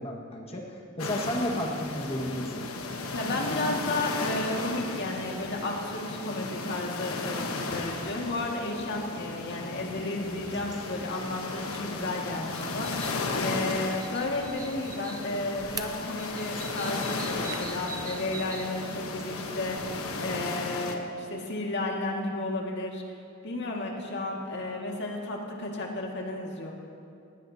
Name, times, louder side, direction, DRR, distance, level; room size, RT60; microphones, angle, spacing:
voice 1, 0.0-2.7, equal, 25° left, -1 dB, 1.7 m, -32 dB
sound 1, 1.0-21.0, left 3 dB, 75° left, 1.2 m, -35 dB
voice 2, 3.1-23.0 23.4-26.7, left 2 dB, 55° left, -1 dB, 2.0 m, -33 dB
sound 2, 10.2-20.5, right 4 dB, 15° right, 0.5 m, -45 dB
19.0 x 16.5 x 2.9 m, 2.6 s
head